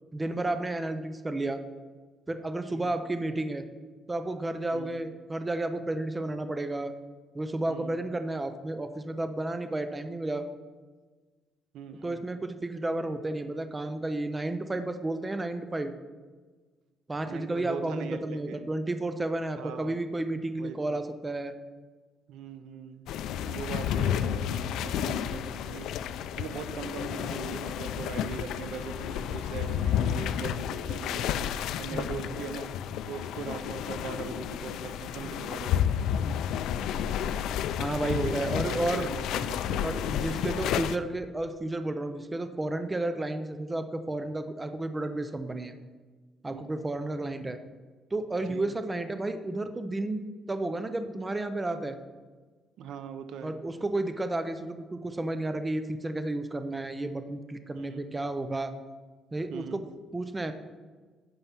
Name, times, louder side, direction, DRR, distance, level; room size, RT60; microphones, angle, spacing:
voice 1, 0.1-1.6 2.3-3.7 4.1-6.9 7.3-10.4 12.0-15.9 17.1-21.5 31.9-32.4 37.8-39.1 39.8-45.7 46.4-47.6 48.1-52.0 53.4-58.7 59.3-59.8 60.1-60.5, right 2 dB, 15° right, 9 dB, 0.4 m, -32 dB
voice 2, 7.7-8.0 11.7-12.2 17.3-18.6 19.6-20.0 20.6-21.0 22.3-23.0 23.4-25.9 26.4-31.4 31.8-32.7 33.0-36.0 38.1-39.9 46.5-46.7 48.5-48.6 52.8-53.6 57.7-58.0 59.5-59.8, right 7 dB, 75° right, 10 dB, 0.7 m, -40 dB
sound 1, 23.1-41.0, left 9 dB, 80° left, 0.4 m, -31 dB
8.9 x 5.5 x 5.9 m, 1.4 s
cardioid pair, 165°, 0 cm